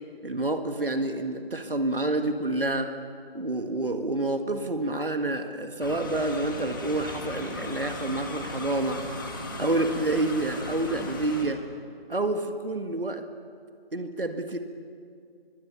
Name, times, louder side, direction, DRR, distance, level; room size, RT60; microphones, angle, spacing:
voice 1, 0.2-2.9 3.3-9.2 9.6-11.6 12.1-13.3 13.9-14.6, right 2 dB, 65° right, 7 dB, 1.9 m, -28 dB
sound 1, 5.8-11.5, left 1 dB, 20° left, 1.8 m, -37 dB
24.0 x 23.5 x 7.0 m, 2.2 s
figure-of-eight pair, 165°, 30 cm